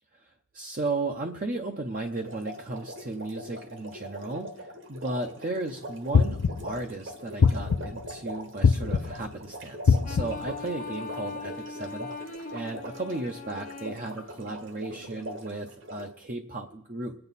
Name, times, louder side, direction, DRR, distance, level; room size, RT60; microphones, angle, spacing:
voice 1, 0.2-6.4 6.6-17.1, right 2 dB, 35° right, 3 dB, 0.7 m, -35 dB
sound 1, 2.1-16.1, right 1 dB, 55° right, 1.5 m, -42 dB
sound 2, 6.1-6.8 7.4-8.1 8.6-9.3 9.9-10.5, left 5 dB, 60° left, 0.4 m, -22 dB
sound 3, 10.0-15.2, left 4 dB, 35° left, 0.9 m, -41 dB
24.0 x 8.9 x 4.1 m, 0.79 s
head